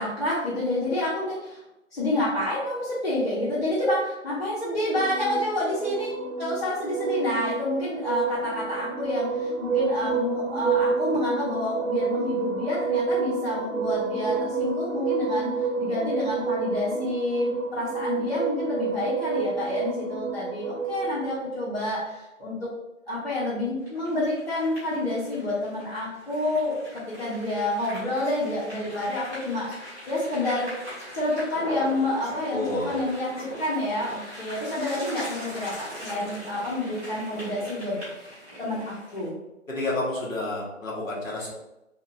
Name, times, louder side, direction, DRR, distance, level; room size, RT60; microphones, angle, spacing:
voice 1, 0.0-1.6 1.9-6.1 6.4-22.7 23.1-30.8 31.1-38.0 38.2-39.3, left 1 dB, 50° left, -8 dB, 1.0 m, -28 dB
sound 1, 4.9-21.4, right 5 dB, 85° right, 0.7 m, -29 dB
sound 2, 23.8-39.3, equal, 10° right, 0.8 m, -41 dB
voice 2, 32.5-33.1 39.7-41.5, left 2 dB, 75° left, -4 dB, 1.2 m, -30 dB
2.8 x 2.5 x 2.6 m, 0.93 s
figure-of-eight pair, 150°, 40 cm